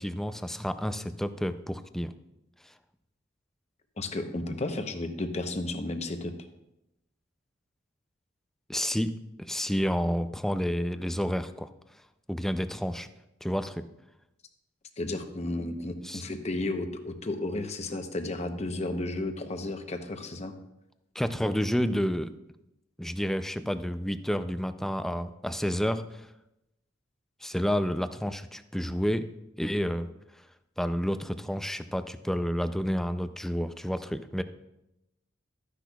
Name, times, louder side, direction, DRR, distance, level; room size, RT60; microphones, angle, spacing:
voice 1, 0.0-2.1 8.7-11.7 12.3-13.1 13.4-13.9 16.0-16.2 21.2-22.3 23.0-26.3 27.4-29.3 29.6-30.1 30.8-34.4, equal, ahead, 10 dB, 0.4 m, -30 dB
voice 2, 4.0-6.3 15.0-20.5, left 2 dB, 35° left, 6 dB, 0.8 m, -33 dB
13.5 x 10.0 x 2.3 m, 0.90 s
head